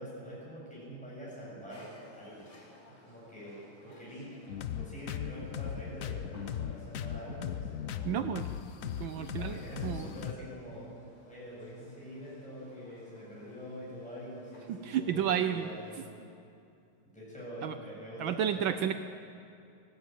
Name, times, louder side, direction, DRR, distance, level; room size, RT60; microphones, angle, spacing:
voice 1, 0.0-2.5 3.0-4.3 4.7-8.1 9.3-10.9 11.3-16.2 17.0-18.9, equal, 5° left, -7 dB, 7.8 m, -45 dB
sound 1, 1.7-16.1, left 1 dB, 50° left, 5.2 m, -59 dB
sound 2, 4.5-10.3, left 9 dB, 65° left, 0.8 m, -38 dB
voice 2, 8.0-8.5 9.0-10.1 14.7-15.7 17.6-17.8 18.2-18.9, right 9 dB, 70° right, 10 dB, 1.4 m, -31 dB
18.5 x 18.5 x 9.2 m, 2.5 s
omnidirectional pair, 2.3 m